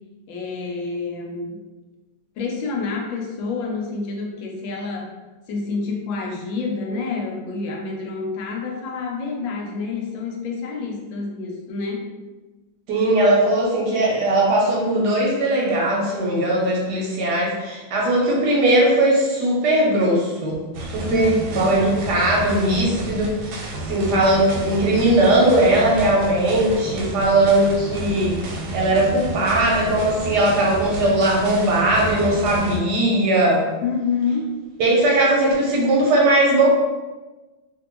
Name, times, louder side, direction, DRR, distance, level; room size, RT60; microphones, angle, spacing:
voice 1, 0.3-1.6 2.4-5.1 5.5-12.1 21.1-21.5 33.8-34.6, left 4 dB, 80° left, 0 dB, 1.3 m, -28 dB
voice 2, 12.9-33.6 34.8-36.7, right 1 dB, 70° right, -3 dB, 1.1 m, -19 dB
sound 1, 20.7-32.8, right 2 dB, 90° right, 1.4 m, -31 dB
2.7 x 2.6 x 2.9 m, 1.2 s
omnidirectional pair, 2.1 m